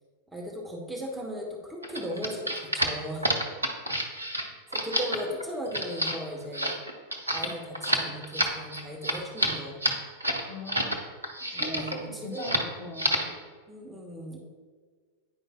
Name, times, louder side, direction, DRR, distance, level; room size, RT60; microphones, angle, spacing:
voice 1, 0.3-3.3 4.0-4.3 4.7-6.8 7.3-9.8 11.4-12.6 13.7-14.4, equal, 5° right, -1 dB, 1.0 m, -37 dB
sound 1, 1.8-11.0 11.2-12.0 12.3-12.7 12.9-13.3, right 1 dB, 80° right, 0.7 m, -29 dB
voice 2, 10.5-11.0 11.6-13.3, left 2 dB, 50° left, 0 dB, 1.4 m, -39 dB
9.6 x 5.0 x 2.2 m, 1.5 s
figure-of-eight pair, 90°, 0 cm